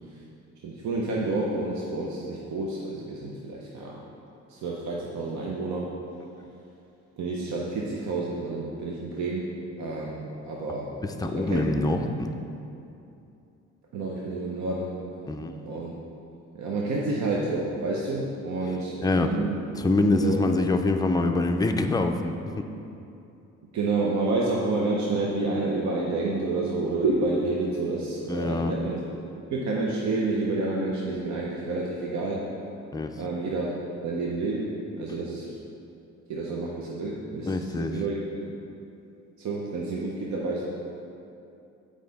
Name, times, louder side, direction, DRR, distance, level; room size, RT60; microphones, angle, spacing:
voice 1, 0.6-4.1 4.5-5.9 7.2-9.5 9.8-11.0 11.2-11.6 12.0-12.1 13.9-14.9 15.6-15.9 16.5-19.6 20.1-20.5 23.7-29.0 29.4-32.4 33.1-33.7 34.0-35.5 36.3-38.4 39.4-40.7, right 2 dB, 65° right, -3 dB, 0.8 m, -29 dB
voice 2, 11.2-12.3 15.3-15.8 19.0-19.4 19.8-22.6 28.3-28.7 32.9-33.1 37.5-37.9, left 2 dB, 15° left, 5 dB, 0.4 m, -25 dB
7.5 x 4.9 x 4.1 m, 2.7 s
cardioid pair, 90°, 30 cm